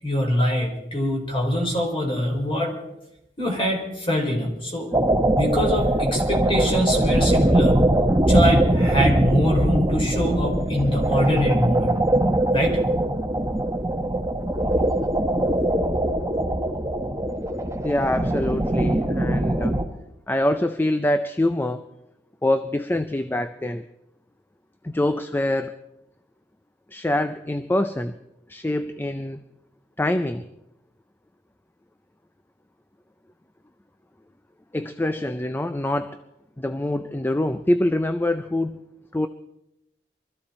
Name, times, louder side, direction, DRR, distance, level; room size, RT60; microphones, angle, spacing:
voice 1, 0.0-2.7 3.4-4.9 5.3-7.8 8.2-11.9 12.5-12.8, equal, 30° left, 0 dB, 4.2 m, -24 dB
sound 1, 4.9-19.8, right 1 dB, 15° right, 1.1 m, -21 dB
voice 2, 17.8-19.8 20.3-21.9 22.4-23.9 24.8-25.8 26.9-28.2 28.5-29.4 30.0-30.5 34.7-36.2 36.6-38.8 39.1-39.3, left 1 dB, 10° left, 10 dB, 0.5 m, -25 dB
23.5 x 14.0 x 4.3 m, 0.86 s
head